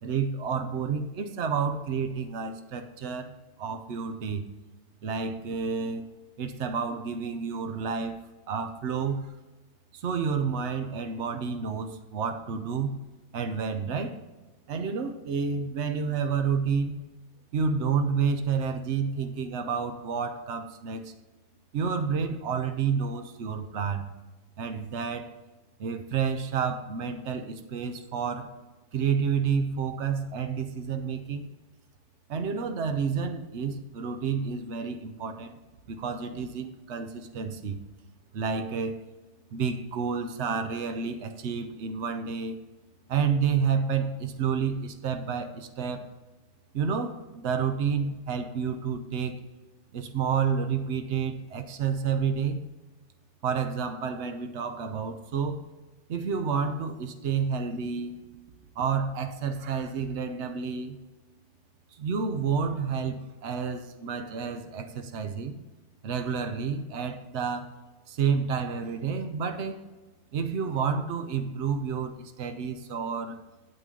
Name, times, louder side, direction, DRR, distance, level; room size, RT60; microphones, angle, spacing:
voice 1, 0.0-4.5 5.0-6.1 6.4-8.2 8.5-9.3 9.9-12.9 13.3-14.2 14.7-17.1 17.5-21.1 21.7-24.1 24.6-25.3 25.8-28.5 28.9-31.5 32.3-35.6 35.9-37.8 38.3-39.0 39.5-42.6 43.1-46.0 46.7-49.4 49.9-52.6 53.4-55.6 56.1-58.2 58.8-61.0 61.9-65.6 66.0-67.8 68.1-69.8 70.3-73.4, right 6 dB, 70° right, 7 dB, 1.1 m, -30 dB
9.2 x 7.8 x 3.8 m, 1.1 s
omnidirectional pair, 1.2 m